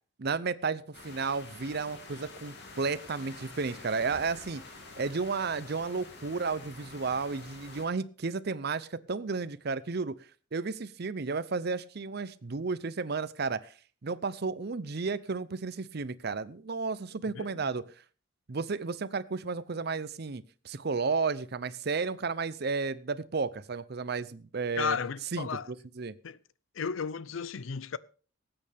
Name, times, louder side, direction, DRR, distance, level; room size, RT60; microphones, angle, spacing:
voice 1, 0.2-4.6 5.0-10.2 10.5-13.7 14.0-17.8 18.5-25.0 25.3-25.5 26.0-26.1, right 4 dB, 55° right, 0.6 m, -33 dB
sound 1, 0.9-7.9, left 3 dB, 60° left, 2.7 m, -48 dB
voice 2, 17.4-17.7 24.8-25.7 26.2-26.4 26.7-28.0, left 6 dB, 90° left, 0.6 m, -34 dB
19.5 x 8.8 x 3.5 m
head